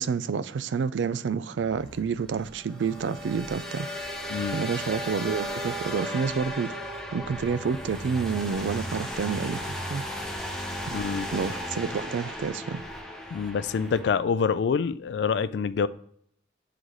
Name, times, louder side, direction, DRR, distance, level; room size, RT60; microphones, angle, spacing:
voice 1, 0.0-3.9 4.5-6.8 7.1-10.0 10.8-11.0 11.3-12.8, right 5 dB, 90° right, 0.4 m, -29 dB
sound 1, 1.7-14.1, equal, ahead, 0.7 m, -35 dB
Bowed string instrument, 2.7-6.5, right 6 dB, 55° right, 2.0 m, -47 dB
voice 2, 10.9-11.3 13.3-15.9, left 6 dB, 75° left, 0.3 m, -26 dB
9.5 x 3.8 x 3.1 m
head